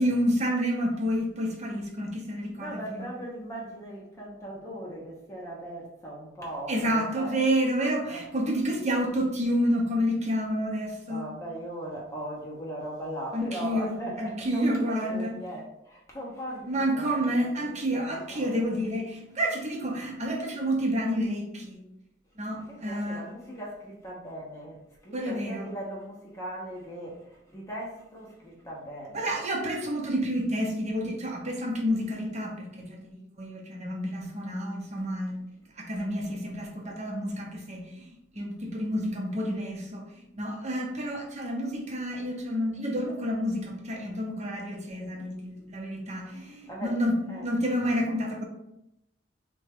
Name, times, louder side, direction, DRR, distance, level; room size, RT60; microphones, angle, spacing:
voice 1, 0.0-3.1 6.7-11.2 13.3-15.3 16.7-21.8 22.4-23.2 25.1-25.7 29.1-35.4 35.8-48.4, equal, 35° right, 0 dB, 0.7 m, -29 dB
voice 2, 2.6-7.4 11.1-18.7 22.6-29.3 46.1-47.0 47.3-47.5, right 1 dB, 15° left, -4 dB, 0.7 m, -39 dB
3.5 x 2.2 x 3.3 m, 0.84 s
head